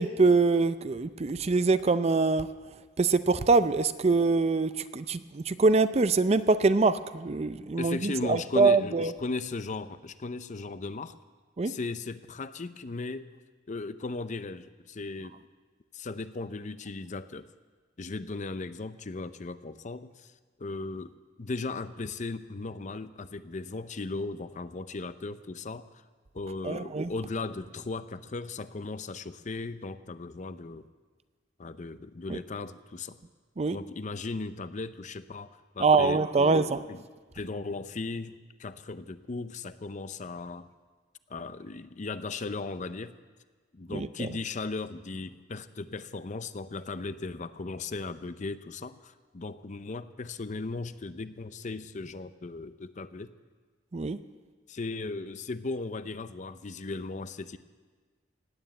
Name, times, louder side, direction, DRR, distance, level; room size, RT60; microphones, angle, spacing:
voice 1, 0.0-2.5 3.0-9.1 11.6-11.7 26.6-27.1 32.3-32.4 33.6-33.8 35.8-36.8 43.9-44.3 53.9-54.2, right 3 dB, 35° right, 13 dB, 0.5 m, -24 dB
voice 2, 7.8-11.2 11.6-13.3 13.7-15.4 15.9-17.5 18.0-20.3 20.6-25.9 26.3-30.9 31.6-33.2 33.7-37.0 37.3-40.7 41.3-43.1 43.7-53.3 54.7-57.6, left 3 dB, 40° left, 12 dB, 0.6 m, -37 dB
16.5 x 9.2 x 8.8 m, 1.4 s
head